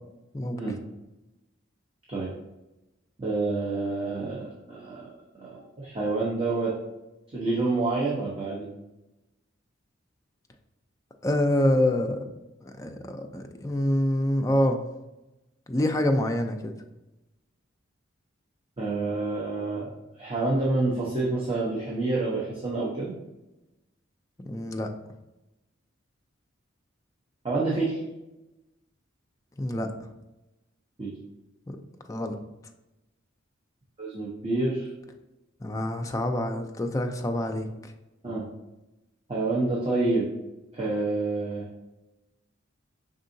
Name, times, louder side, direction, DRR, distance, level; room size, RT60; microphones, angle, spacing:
voice 1, 3.2-4.4 4.7-5.0 5.4-6.7 7.3-8.7 18.8-19.9 20.2-23.1 27.4-28.0 31.0-31.1 34.0-34.9 38.2-38.4 39.3-40.3 40.7-41.7, right 3 dB, 25° right, -6 dB, 0.8 m, -28 dB
voice 2, 11.2-12.2 12.6-14.8 15.7-16.7 24.4-24.9 29.6-29.9 31.7-31.8 32.1-32.4 35.6-37.7, left 1 dB, 15° left, 4 dB, 0.4 m, -26 dB
5.4 x 3.7 x 2.6 m, 0.98 s
head